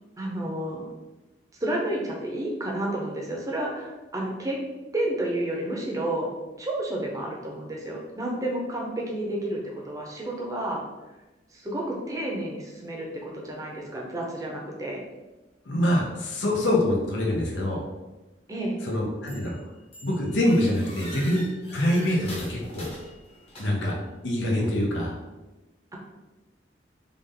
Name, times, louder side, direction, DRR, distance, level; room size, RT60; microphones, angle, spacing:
voice 1, 0.2-0.9 1.6-4.6 4.9-6.3 6.6-10.8 11.5-15.0 18.5-18.8, right 1 dB, 20° right, -2 dB, 0.6 m, -31 dB
voice 2, 15.6-17.8 18.8-19.6 20.0-21.5 21.7-22.9 23.6-24.0 24.2-25.1, left 1 dB, 85° left, -1 dB, 0.7 m, -25 dB
sound 1, 19.3-19.6 19.9-24.0, left 1 dB, 35° left, 0.9 m, -43 dB
3.4 x 2.5 x 3.7 m, 1.1 s
head